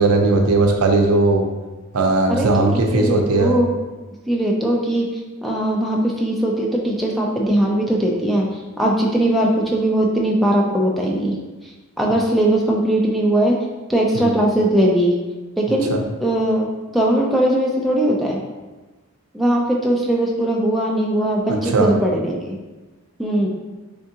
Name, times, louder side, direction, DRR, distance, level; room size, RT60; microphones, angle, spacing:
voice 1, 0.0-1.4 1.9-3.6 14.1-14.3 15.9-16.0 21.5-21.9, right 2 dB, 80° right, 2 dB, 0.6 m, -17 dB
voice 2, 2.3-3.7 4.3-8.5 8.8-11.4 12.0-13.6 13.9-15.1 15.6-15.9 16.2-16.7 16.9-18.4 19.3-22.6 23.2-23.5, right 1 dB, ahead, -2 dB, 0.4 m, -19 dB
3.6 x 3.4 x 2.8 m, 1.2 s
head